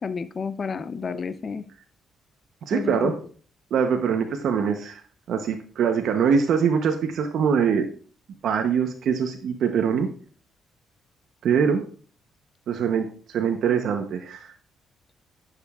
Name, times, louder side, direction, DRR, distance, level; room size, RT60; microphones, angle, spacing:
voice 1, 0.0-1.6 2.7-3.1, left 5 dB, 40° left, 13 dB, 0.6 m, -30 dB
voice 2, 2.7-3.1 3.7-5.0 5.3-7.9 8.4-10.1 11.4-11.8 12.7-14.5, right 7 dB, 70° right, 5 dB, 0.8 m, -23 dB
9.9 x 6.6 x 2.4 m, 0.43 s
cardioid pair, 90°, 0 cm